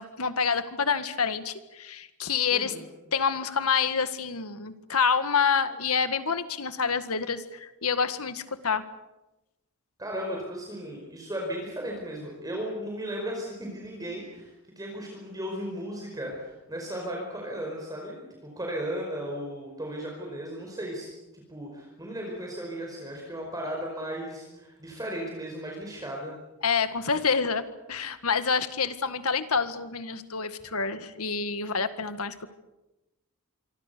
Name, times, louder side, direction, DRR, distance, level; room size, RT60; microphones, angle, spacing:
voice 1, 0.0-2.7 3.1-8.8 26.6-32.5, left 6 dB, 80° left, 11 dB, 1.8 m, -27 dB
voice 2, 2.5-2.8 10.0-14.5 14.7-21.1 21.3-26.3, equal, 15° right, 0 dB, 4.9 m, -35 dB
26.0 x 25.0 x 6.9 m, 0.97 s
head